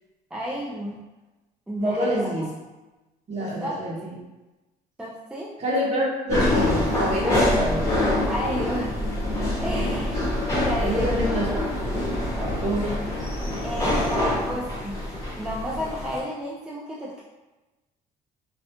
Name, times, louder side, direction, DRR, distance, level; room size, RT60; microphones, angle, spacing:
voice 1, 0.3-1.0 1.7-2.3 3.3-3.8 5.0-5.5 8.3-9.0 9.6-10.3 10.6-11.2 13.6-17.2, equal, 5° right, -4 dB, 0.3 m, -32 dB
voice 2, 1.8-2.5 3.3-4.1 5.6-7.8 10.8-11.5 12.6-12.9, equal, 40° right, -4 dB, 0.8 m, -26 dB
sound 1, 6.3-16.2, left 1 dB, 20° left, 0.8 m, -25 dB
2.4 x 2.1 x 2.8 m, 1.1 s
cardioid pair, 110°, 17 cm